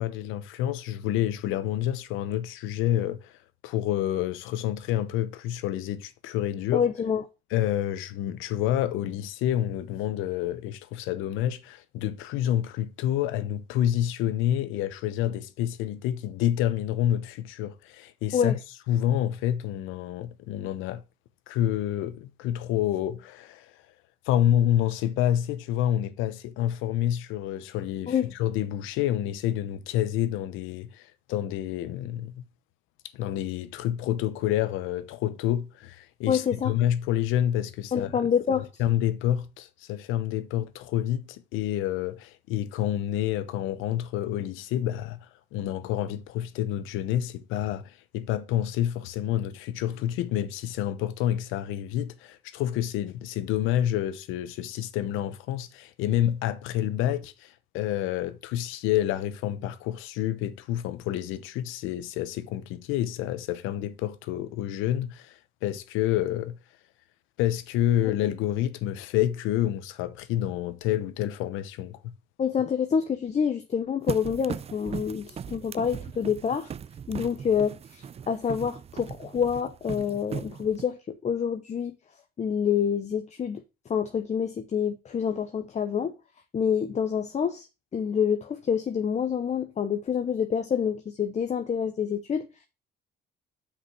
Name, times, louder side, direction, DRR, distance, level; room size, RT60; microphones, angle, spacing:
voice 1, 0.0-3.4 3.6-6.9 7.5-18.6 18.9-21.0 21.5-23.7 24.3-32.4 33.1-38.1 38.6-66.6 67.4-72.1, left 12 dB, 90° left, 0.8 m, -28 dB
voice 2, 6.7-7.2 18.3-18.5 28.1-28.3 36.3-36.7 37.9-38.7 72.4-76.7 77.1-81.0 81.2-81.9 82.4-83.6 83.9-86.1 86.5-87.7 87.9-92.5, left 7 dB, 35° left, 0.8 m, -27 dB
sound 1, 74.1-80.8, right 7 dB, 30° right, 0.4 m, -38 dB
5.8 x 5.1 x 5.9 m
cardioid pair, 100°, 20 cm